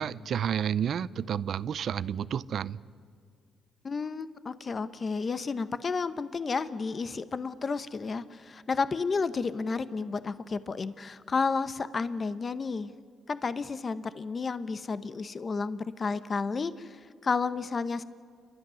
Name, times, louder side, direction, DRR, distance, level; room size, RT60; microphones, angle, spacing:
voice 1, 0.0-2.8, right 8 dB, 60° right, 18 dB, 0.6 m, -30 dB
voice 2, 3.8-12.9 13.3-18.0, left 4 dB, 35° left, 13 dB, 0.9 m, -31 dB
29.5 x 13.0 x 9.7 m, 2.1 s
cardioid pair, 90°, 0 cm